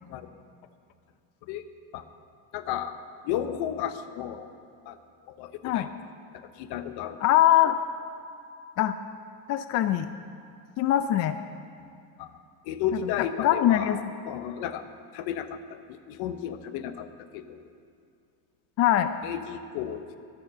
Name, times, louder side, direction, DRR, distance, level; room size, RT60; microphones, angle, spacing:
voice 1, 2.5-3.0 3.2-4.5 4.9-5.0 5.4-5.8 6.6-7.2 12.2-12.3 12.7-13.9 14.3-14.8 15.1-15.6 16.1-17.6 19.2-20.2, left 9 dB, 65° left, 10 dB, 0.9 m, -33 dB
voice 2, 7.2-7.8 8.8-9.0 9.5-10.1 10.8-11.4 12.9-14.0 18.8-19.1, left 12 dB, 40° left, 10 dB, 0.5 m, -22 dB
12.0 x 10.5 x 6.7 m, 2.3 s
cardioid pair, 135°, 40 cm